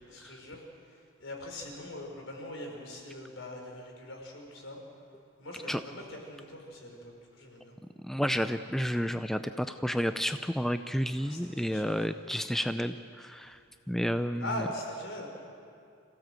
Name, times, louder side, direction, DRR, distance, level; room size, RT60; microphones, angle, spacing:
voice 1, 0.0-4.8 5.4-7.8 11.2-12.1 14.4-15.3, left 1 dB, 75° left, 1 dB, 4.7 m, -42 dB
voice 2, 8.0-13.6 13.9-14.7, equal, ahead, 9 dB, 0.4 m, -31 dB
27.0 x 16.0 x 7.7 m, 2.4 s
head